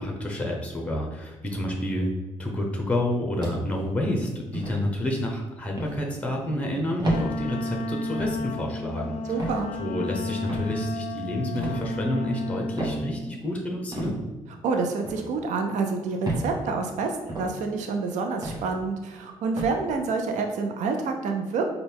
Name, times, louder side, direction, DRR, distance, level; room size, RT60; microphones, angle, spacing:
voice 1, 0.0-2.1 2.4-14.2, left 1 dB, 10° left, 1 dB, 0.8 m, -29 dB
sound 1, 3.4-3.9 4.5-4.8 5.8-6.0 7.0-7.3 8.2-8.4 9.4-9.6 10.5-10.7 11.5-11.8 12.8-13.0 13.9-14.1 15.0-15.3 16.2-16.5 17.3-17.5 18.4-18.7 19.6-19.8, right 1 dB, 30° right, 1.2 m, -31 dB
Wind instrument woodwind instrument, 7.1-13.2, left 2 dB, 60° left, 0.4 m, -32 dB
voice 2, 9.3-9.7 14.6-21.6, right 4 dB, 70° right, 4 dB, 0.5 m, -28 dB
4.1 x 2.2 x 3.4 m, 1.2 s
supercardioid pair, 60°, 13 cm